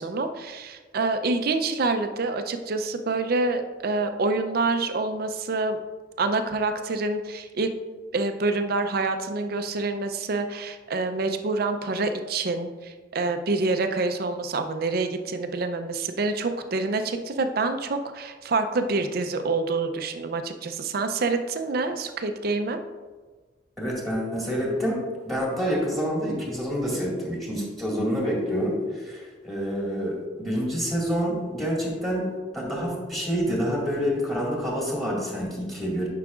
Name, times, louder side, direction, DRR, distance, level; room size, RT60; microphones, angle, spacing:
voice 1, 0.0-5.8 6.2-7.7 8.1-22.8, right 3 dB, 55° right, 8 dB, 0.5 m, -27 dB
voice 2, 23.8-32.3 32.5-36.1, equal, ahead, -4 dB, 1.9 m, -27 dB
9.7 x 5.7 x 2.4 m, 1.4 s
head